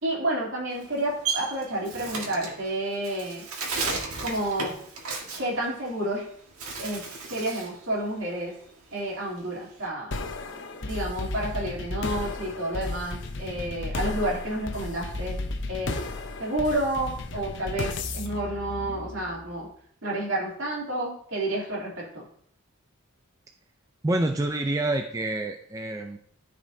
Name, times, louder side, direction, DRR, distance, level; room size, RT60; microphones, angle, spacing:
voice 1, 0.0-3.4 4.2-4.7 5.4-6.2 6.8-7.0 7.3-8.5 8.9-10.1 10.8-15.4 15.7-15.9 16.4-19.7 20.0-22.2, right 1 dB, 65° right, -4 dB, 2.9 m, -30 dB
Bird, 0.7-6.2 6.5-7.8 8.1-9.9, right 4 dB, 90° right, 1.7 m, -34 dB
sound 1, 10.1-19.5, left 2 dB, 60° left, 0.8 m, -34 dB
voice 2, 24.0-26.2, right 2 dB, 15° right, 3 dB, 0.4 m, -27 dB
13.5 x 5.2 x 2.7 m, 0.63 s
head